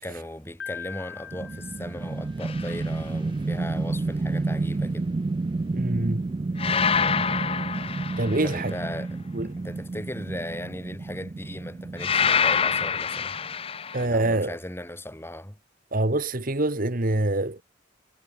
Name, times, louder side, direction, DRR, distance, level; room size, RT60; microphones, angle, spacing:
voice 1, 0.0-5.1 8.4-9.2 9.6-13.4 14.0-15.6, left 1 dB, 10° left, 4.6 m, -37 dB
Piano, 0.6-2.7, left 7 dB, 55° left, 2.1 m, -41 dB
sound 1, 1.3-13.5, right 3 dB, 25° right, 0.3 m, -31 dB
sound 2, 2.4-2.8 6.6-8.7 12.0-14.0, left 6 dB, 30° left, 0.8 m, -26 dB
voice 2, 5.7-6.2 8.2-8.7 9.3-9.6 13.9-14.6 15.9-17.6, right 2 dB, 45° right, 1.7 m, -25 dB
head